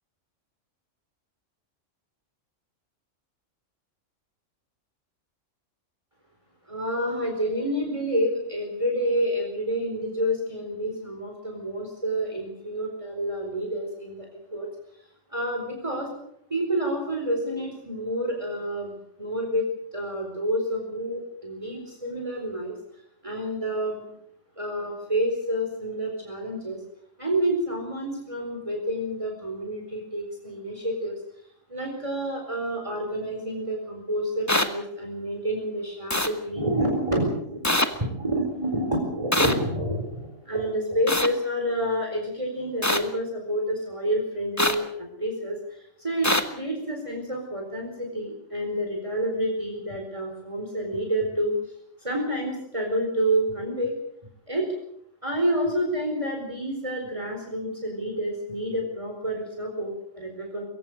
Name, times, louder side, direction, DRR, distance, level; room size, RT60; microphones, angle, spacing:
voice 1, 6.7-14.7 15.3-16.1 16.5-22.8 23.2-24.1 24.6-26.8 27.2-31.2 31.7-51.7 52.0-53.9 54.5-54.7 55.2-60.6, equal, 25° right, 1 dB, 4.5 m, -29 dB
sound 1, 34.5-34.7 36.1-36.3 37.6-37.9 39.3-39.5 41.1-41.3 42.8-43.0 44.6-44.8 46.2-46.4, left 1 dB, 15° left, 1.5 m, -22 dB
23.5 x 16.5 x 7.9 m, 0.72 s
omnidirectional pair, 1.3 m